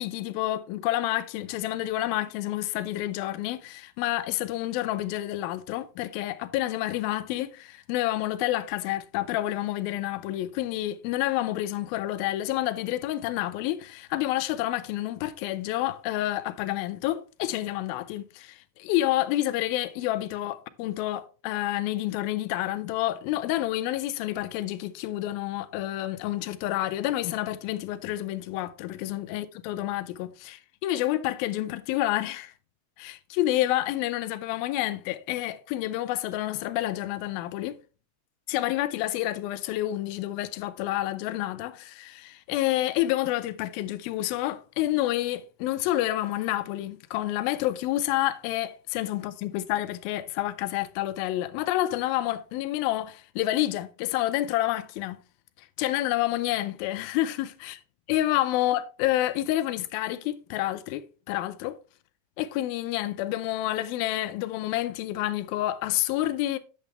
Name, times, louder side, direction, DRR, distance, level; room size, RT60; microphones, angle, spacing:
voice 1, 0.0-32.5 33.0-37.8 38.5-55.2 55.6-57.7 58.1-61.8 62.4-66.6, left 15 dB, 85° left, 2.5 m, -29 dB
9.2 x 7.3 x 3.3 m
omnidirectional pair, 4.3 m